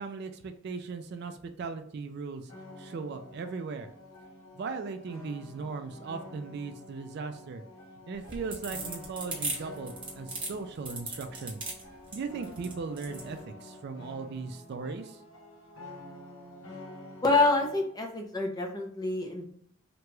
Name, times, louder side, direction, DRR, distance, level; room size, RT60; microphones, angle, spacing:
voice 1, 0.0-2.5 2.8-3.9 4.5-7.6 8.1-11.6 12.1-15.2, right 4 dB, 50° right, 8 dB, 0.3 m, -38 dB
sound 1, 2.5-17.9, left 1 dB, 75° left, 0.9 m, -48 dB
sound 2, 8.1-13.3, right 3 dB, 25° right, 0.8 m, -37 dB
voice 2, 17.2-19.5, left 3 dB, 20° left, 2 dB, 0.5 m, -27 dB
2.9 x 2.3 x 3.0 m, 0.65 s
head